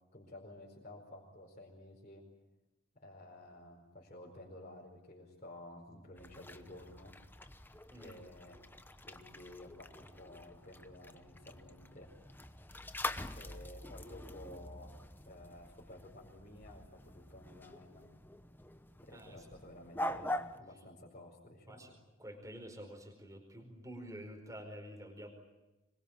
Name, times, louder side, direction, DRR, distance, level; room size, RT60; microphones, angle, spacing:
voice 1, 0.1-2.2 2.9-7.1 7.9-8.6 9.1-12.1 13.3-14.9 15.2-18.0 19.0-22.0, left 1 dB, 35° left, -5 dB, 4.9 m, -53 dB
sound 1, 6.2-20.6, left 1 dB, 10° left, 0.9 m, -45 dB
voice 2, 19.1-19.5 21.7-21.9 22.2-25.3, equal, 15° right, 4 dB, 4.8 m, -49 dB
25.5 x 23.0 x 8.9 m, 1.0 s
head